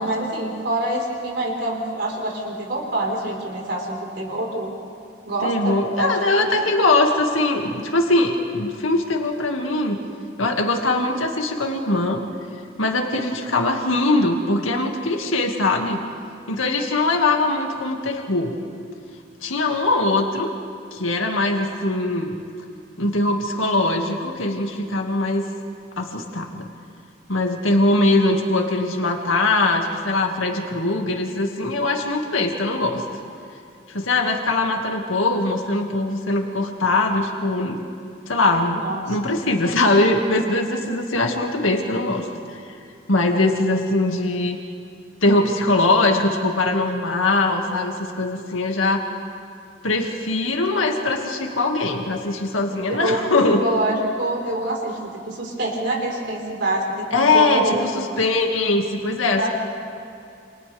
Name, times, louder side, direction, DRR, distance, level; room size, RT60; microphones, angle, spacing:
voice 1, 0.0-4.7 5.2-6.7 38.7-39.2 52.9-53.2 53.6-55.0 55.3-58.2 59.4-59.5, right 1 dB, 55° right, -1 dB, 4.7 m, -26 dB
voice 2, 5.4-10.0 10.4-12.2 12.8-16.0 16.5-18.5 19.4-20.5 20.9-22.4 23.0-25.5 26.0-26.7 27.3-33.0 33.9-37.8 38.3-38.8 39.1-42.6 43.1-44.6 45.2-49.1 49.8-53.6 57.1-59.5, left 2 dB, 85° left, 2 dB, 2.2 m, -21 dB
28.5 x 28.0 x 3.6 m, 2.5 s
head